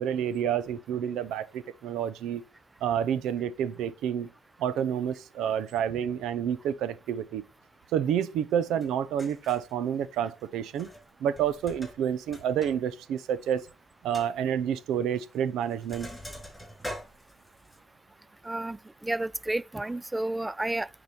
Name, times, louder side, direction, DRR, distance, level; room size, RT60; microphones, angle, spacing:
voice 1, 0.0-2.4 2.8-4.3 4.6-7.4 7.9-10.9 11.2-13.7 14.0-16.1, right 9 dB, 85° right, 0.7 m, -29 dB
Sink (filling or washing), 8.8-8.9 9.2-9.7 10.7-11.1 11.4-12.8 13.1-13.2 13.6-13.7 14.1-14.3 15.2-15.4 15.6-17.8, equal, 5° left, 4.8 m, -43 dB
voice 2, 18.4-20.9, right 1 dB, 15° right, 0.3 m, -31 dB
9.6 x 4.1 x 4.4 m
cardioid pair, 90°, 0 cm